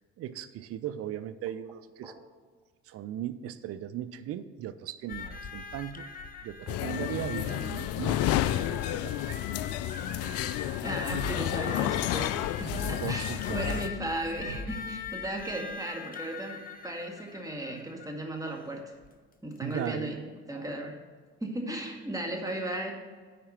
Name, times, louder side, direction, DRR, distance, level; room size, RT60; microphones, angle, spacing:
voice 1, 0.0-2.1 2.8-6.1 6.4-9.4 13.0-13.7 19.6-20.2, right 11 dB, 45° right, 12 dB, 0.6 m, -38 dB
sound 1, 5.1-18.2 19.0-19.1 19.6-19.7, left 5 dB, 25° left, 0.9 m, -42 dB
sound 2, 6.7-13.9, left 13 dB, 50° left, 0.4 m, -31 dB
voice 2, 10.8-19.0 19.4-21.0 21.4-22.9, right 1 dB, 10° right, 1 dB, 1.9 m, -36 dB
sound 3, 11.1-11.4 12.7-13.0 13.5-13.8 14.5-14.8, right 1 dB, 70° right, 1.5 m, -37 dB
10.0 x 4.3 x 7.1 m, 1.5 s
figure-of-eight pair, 55°, 33 cm